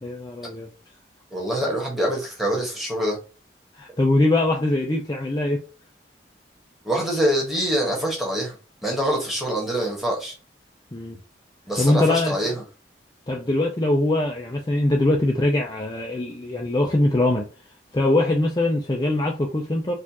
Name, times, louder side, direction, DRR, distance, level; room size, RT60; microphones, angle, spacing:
voice 1, 0.0-0.7 3.8-5.6 10.9-11.2 11.8-12.3 13.3-17.5 17.9-19.9, left 2 dB, 20° left, 0.4 m, -22 dB
voice 2, 1.3-3.2 6.8-8.5 8.8-10.3 11.7-12.6, right 1 dB, ahead, 1.2 m, -25 dB
4.2 x 2.5 x 2.9 m
head